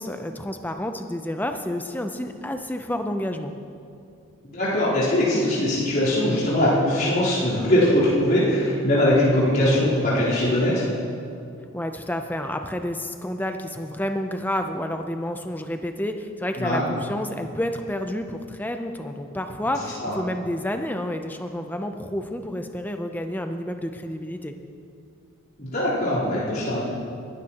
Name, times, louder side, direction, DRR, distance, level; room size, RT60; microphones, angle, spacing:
voice 1, 0.0-3.5 11.7-24.5, left 1 dB, 10° left, 6 dB, 0.5 m, -30 dB
voice 2, 4.4-10.8 16.6-16.8 20.0-20.2 25.6-26.8, left 1 dB, 45° left, -11 dB, 3.8 m, -21 dB
19.0 x 12.5 x 3.0 m, 2.5 s
head